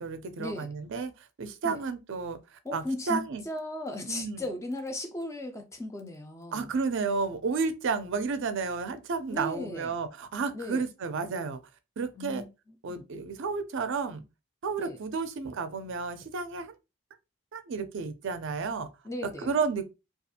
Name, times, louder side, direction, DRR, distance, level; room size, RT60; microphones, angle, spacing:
voice 1, 0.0-1.1 1.4-3.4 4.1-4.4 6.5-11.6 12.0-12.4 12.8-14.2 14.6-16.7 17.5-18.9 19.4-19.8, right 4 dB, 55° right, 0.4 m, -32 dB
voice 2, 2.6-6.7 9.3-9.9 10.5-10.8 12.1-12.5 12.9-13.0 14.8-15.0 19.0-19.5, left 1 dB, 15° left, 0.3 m, -36 dB
2.4 x 2.3 x 2.6 m
head